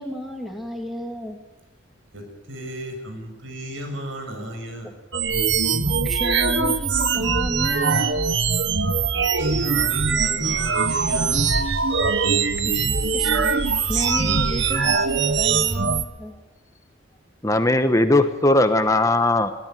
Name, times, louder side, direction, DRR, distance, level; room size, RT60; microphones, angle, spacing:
voice 1, 0.0-1.4 5.8-8.3 12.6-12.9 13.1-13.5 13.9-16.3, equal, ahead, 2 dB, 2.7 m, -32 dB
voice 2, 2.1-4.9 9.1-11.8, equal, 85° right, 5 dB, 6.7 m, -35 dB
sound 1, 5.1-16.0, right 5 dB, 60° right, 1.2 m, -22 dB
sound 2, 10.5-15.8, right 1 dB, 30° right, 3.9 m, -39 dB
voice 3, 17.4-19.5, left 2 dB, 15° left, 8 dB, 1.1 m, -18 dB
21.0 x 16.5 x 9.2 m, 1.0 s
head